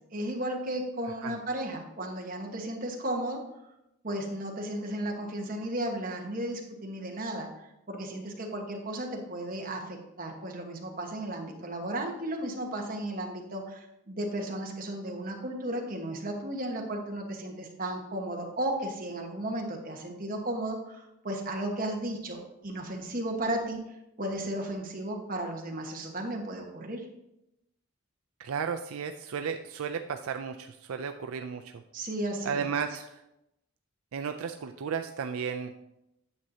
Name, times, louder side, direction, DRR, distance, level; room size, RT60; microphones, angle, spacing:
voice 1, 0.1-3.4 4.0-23.8 24.2-27.1 31.9-32.6, right 1 dB, 40° right, 1 dB, 1.3 m, -34 dB
voice 2, 28.4-31.8 32.4-33.2 34.1-35.7, right 6 dB, 80° right, 7 dB, 0.4 m, -34 dB
9.5 x 7.3 x 2.8 m, 0.87 s
head